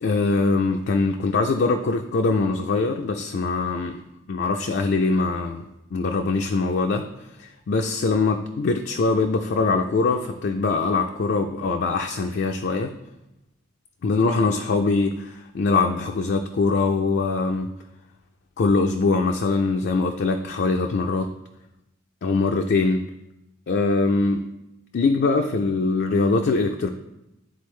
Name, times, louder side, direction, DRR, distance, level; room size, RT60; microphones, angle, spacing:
voice 1, 0.0-4.0 4.3-5.6 5.9-7.1 7.4-12.9 14.0-17.7 18.6-21.3 22.2-23.1 23.7-24.5 24.9-26.9, left 3 dB, 55° left, 4 dB, 0.4 m, -22 dB
11.0 x 3.9 x 3.2 m, 0.91 s
head